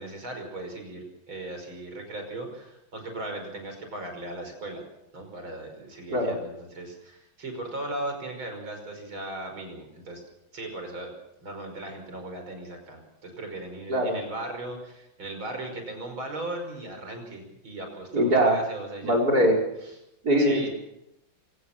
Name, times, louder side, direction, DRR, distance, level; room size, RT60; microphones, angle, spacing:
voice 1, 0.0-4.8 5.1-10.2 10.5-11.1 11.4-19.2 20.4-20.7, right 2 dB, 85° right, 4 dB, 6.3 m, -37 dB
voice 2, 18.1-18.6 19.0-19.6 20.2-20.7, equal, 50° right, 0 dB, 6.1 m, -21 dB
25.5 x 17.5 x 7.5 m, 0.85 s
omnidirectional pair, 2.1 m